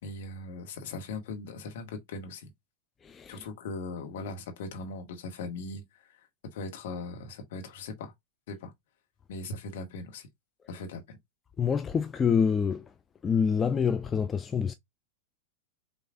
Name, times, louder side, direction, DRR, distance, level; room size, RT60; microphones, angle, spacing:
voice 1, 0.0-2.5 3.3-6.2 6.5-8.1 8.5-8.7 9.3-10.3 10.7-11.2, left 3 dB, 55° left, 1.7 m, -39 dB
voice 2, 11.6-12.8 13.2-14.7, left 6 dB, 20° left, 0.4 m, -26 dB
6.3 x 3.1 x 2.5 m
figure-of-eight pair, 90°, 0 cm